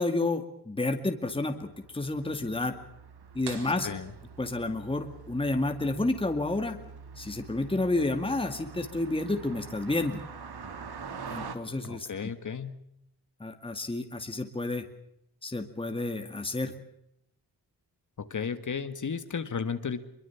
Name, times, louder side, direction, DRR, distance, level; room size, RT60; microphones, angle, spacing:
voice 1, 0.0-2.7 3.3-3.9 4.4-6.8 7.2-10.2 11.3-12.1 13.4-14.8 15.4-16.7, left 2 dB, 15° left, 6 dB, 2.2 m, -30 dB
Car passing by, 1.5-11.5, right 5 dB, 75° right, 3.2 m, -45 dB
sound 1, 3.4-5.1, right 5 dB, 90° right, 4.6 m, -46 dB
voice 2, 3.8-4.1 11.8-12.8 18.2-20.0, left 6 dB, 50° left, 10 dB, 1.8 m, -34 dB
25.5 x 23.0 x 7.2 m, 0.76 s
wide cardioid pair, 145°, 39 cm